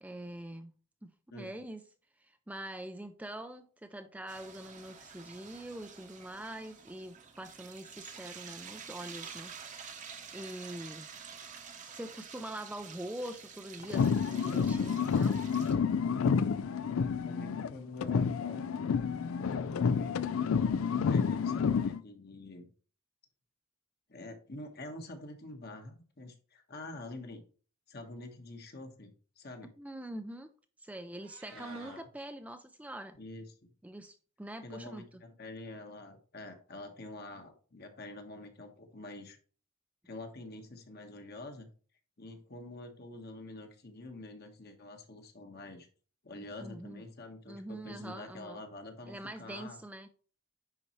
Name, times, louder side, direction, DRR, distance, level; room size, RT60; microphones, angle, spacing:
voice 1, 0.0-0.7 1.0-1.8 2.2-9.6 10.3-11.1 11.9-15.5 29.8-30.5 30.8-33.2 33.8-35.2 46.4-47.0 47.5-48.6 49.1-50.1, right 1 dB, 5° right, 0.4 m, -44 dB
sound 1, 4.3-15.7, right 6 dB, 35° right, 0.9 m, -49 dB
sound 2, 13.8-17.7 18.0-22.0, left 6 dB, 75° left, 0.4 m, -29 dB
voice 2, 17.0-18.9 19.4-20.2 20.8-22.7 24.1-27.4 27.9-29.7 31.5-32.1 33.2-33.7 34.6-39.4 40.0-41.7 42.2-45.9 46.2-49.8, left 2 dB, 50° left, 1.3 m, -46 dB
Meow, 31.0-32.0, right 5 dB, 90° right, 1.6 m, -54 dB
9.9 x 4.2 x 3.1 m
head